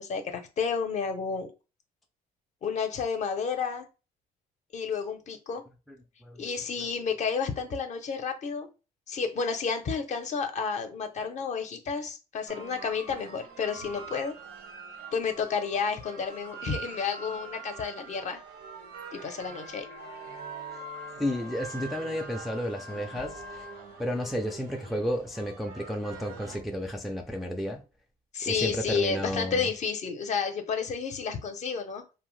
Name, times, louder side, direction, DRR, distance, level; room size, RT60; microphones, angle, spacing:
voice 1, 0.0-1.5 2.6-3.9 4.7-5.6 6.4-8.7 9.1-14.3 15.1-18.4 19.1-19.9 28.3-32.0, left 5 dB, 45° left, 0.6 m, -31 dB
sound 1, 12.5-26.6, right 3 dB, 85° right, 0.9 m, -43 dB
voice 2, 21.2-23.6 24.0-27.8 28.5-29.7, equal, ahead, 0.4 m, -32 dB
2.7 x 2.0 x 3.1 m
cardioid pair, 110°, 17 cm